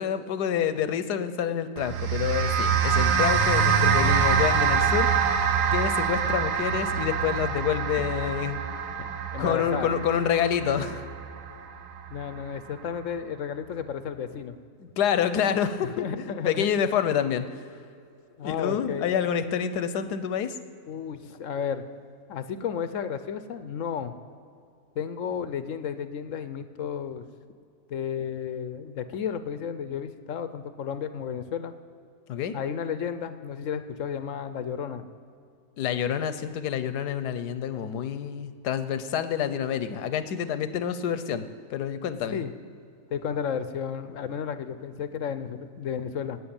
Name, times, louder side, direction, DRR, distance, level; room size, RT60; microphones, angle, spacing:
voice 1, 0.0-5.1 5.7-8.6 9.4-11.0 14.8-17.6 18.4-20.6 32.3-32.6 35.8-42.4, left 8 dB, 85° left, 11 dB, 1.4 m, -28 dB
sound 1, 1.8-12.3, right 6 dB, 80° right, 1.5 m, -25 dB
voice 2, 9.3-9.9 12.1-14.6 15.8-16.7 18.4-19.1 20.9-21.9 22.3-24.2 25.0-27.3 27.9-31.7 32.5-35.0 42.3-42.5 43.1-46.4, left 7 dB, 65° left, 11 dB, 0.9 m, -32 dB
13.0 x 9.1 x 8.8 m, 2.4 s
omnidirectional pair, 1.7 m